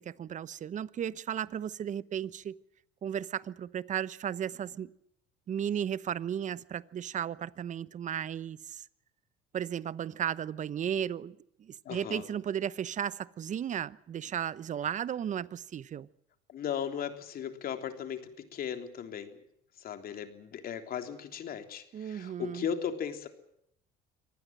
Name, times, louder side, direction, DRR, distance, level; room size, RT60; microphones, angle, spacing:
voice 1, 0.0-2.6 3.0-4.9 5.5-8.8 9.5-16.1 21.9-22.7, right 9 dB, 40° right, 1.0 m, -35 dB
voice 2, 11.9-12.2 16.5-19.4 19.8-23.3, left 8 dB, 50° left, 3.5 m, -37 dB
24.5 x 19.0 x 7.7 m
supercardioid pair, 95°, 19 cm